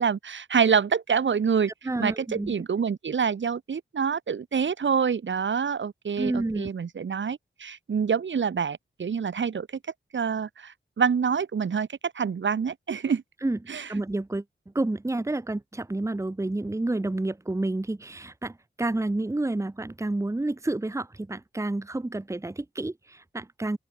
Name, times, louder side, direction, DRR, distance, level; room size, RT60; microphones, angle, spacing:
voice 1, 0.0-9.7 10.1-13.2 13.7-13.9, right 6 dB, 70° right, 1.6 m, -26 dB
voice 2, 1.8-2.5 6.2-6.7 13.4-13.6 13.9-14.4 14.7-23.8, right 2 dB, 15° right, 1.0 m, -29 dB
open air
wide cardioid pair, 90°, 20 cm